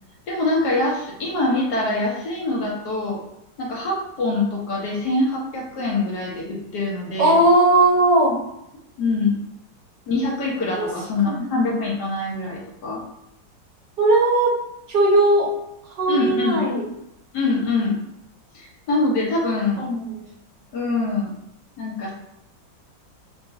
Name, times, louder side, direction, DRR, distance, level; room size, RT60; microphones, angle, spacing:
voice 1, 0.3-3.2 3.6-7.4 9.0-9.4 10.1-13.0 16.1-16.6 17.3-18.0 18.5-19.9 20.7-21.3 21.8-22.1, left 2 dB, 70° left, -3 dB, 1.5 m, -24 dB
voice 2, 7.2-8.4 10.8-10.9 11.2-11.4 14.0-14.6 14.9-15.5 16.0-16.8 19.8-20.2, right 2 dB, 75° right, -3 dB, 1.7 m, -18 dB
4.6 x 2.9 x 2.6 m, 0.81 s
omnidirectional pair, 1.9 m